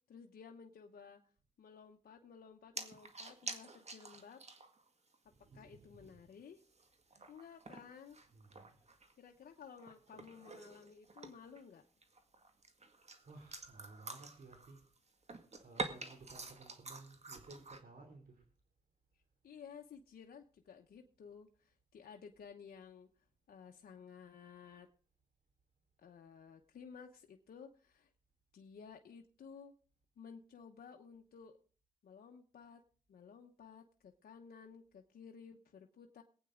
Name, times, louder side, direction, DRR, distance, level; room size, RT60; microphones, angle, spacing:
voice 1, 0.1-1.2 1.6-4.4 5.2-6.6 7.3-8.2 9.2-11.8 19.4-24.9 26.0-28.1 28.5-29.8 30.2-31.6 32.0-32.8 33.1-36.2, left 6 dB, 90° left, 2 dB, 0.9 m, -55 dB
sound 1, 2.8-4.9 5.1-5.2 5.7-5.8 6.4-9.1 9.4-11.6 12.0-15.0 15.2-17.8, right 3 dB, 45° right, 1.9 m, -48 dB
voice 2, 5.3-6.3 7.1-7.3 8.3-8.9 9.3-9.5 13.2-14.9 15.3-18.5, right 3 dB, 65° right, 3 dB, 2.9 m, -57 dB
22.5 x 8.9 x 3.8 m, 0.43 s
cardioid pair, 65°, 15 cm